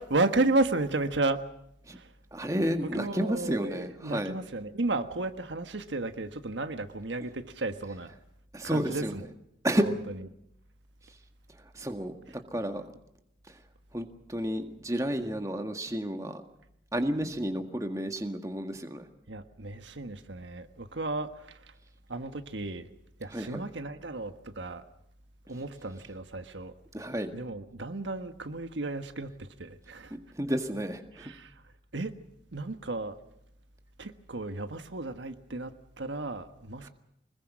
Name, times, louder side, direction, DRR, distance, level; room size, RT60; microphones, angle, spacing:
voice 1, 0.0-1.4 1.9-2.0 2.9-8.1 8.6-9.2 19.3-21.3 22.1-22.9 23.2-24.8 25.5-26.7 27.3-29.3 29.6-30.1 31.2-31.5 31.9-32.1 32.5-33.1 34.0-36.9, right 2 dB, 75° right, 1.4 m, -33 dB
voice 2, 2.3-4.4 8.5-9.2 9.6-9.9 11.7-12.8 13.5-13.6 13.9-16.4 16.9-19.1 23.3-23.7 25.5-25.6 26.9-27.3 30.1-31.3 36.8-36.9, equal, 15° right, 1.8 m, -31 dB
25.5 x 21.0 x 6.2 m
head